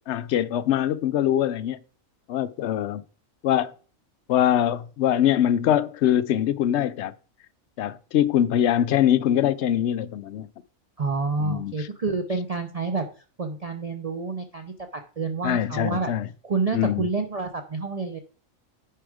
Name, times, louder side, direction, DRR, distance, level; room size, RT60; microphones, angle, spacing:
voice 1, 0.1-1.8 2.3-3.0 3.4-3.7 4.3-7.1 7.8-10.5 11.4-11.9 15.4-16.3 16.7-17.1, left 11 dB, 65° left, 0.8 m, -23 dB
voice 2, 11.0-16.1 16.4-18.2, right 4 dB, 35° right, 0.7 m, -28 dB
10.0 x 4.7 x 4.9 m
omnidirectional pair, 1.4 m